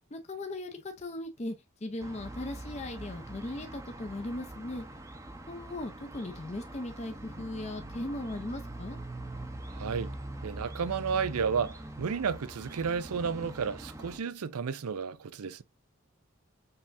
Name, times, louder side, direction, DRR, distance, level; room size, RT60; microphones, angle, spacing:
voice 1, 0.1-1.5 1.8-4.8 5.5-9.0, left 1 dB, 30° left, 0.6 m, -38 dB
sound 1, 2.0-14.2, right 1 dB, 15° right, 0.6 m, -43 dB
voice 2, 9.7-10.1 10.4-15.6, right 6 dB, 90° right, 0.5 m, -32 dB
5.5 x 3.4 x 2.5 m
head